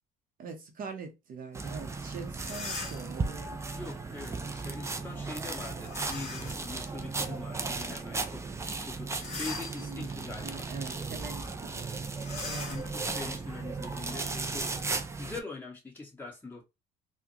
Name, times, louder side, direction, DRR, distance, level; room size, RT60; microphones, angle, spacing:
voice 1, 0.4-3.5 9.8-11.9 12.4-12.8, right 5 dB, 55° right, 0.8 m, -43 dB
sound 1, 1.5-15.4, right 3 dB, 15° right, 0.5 m, -36 dB
sound 2, 2.3-3.2 5.8-6.7 7.2-7.3 9.0-10.1 10.7-10.9 11.2-11.3 12.2-14.6, left 3 dB, 40° left, 1.5 m, -41 dB
voice 2, 3.7-10.7 12.7-14.6 15.2-16.6, left 3 dB, 10° left, 1.6 m, -43 dB
3.8 x 2.2 x 2.8 m
cardioid pair, 110°, 17 cm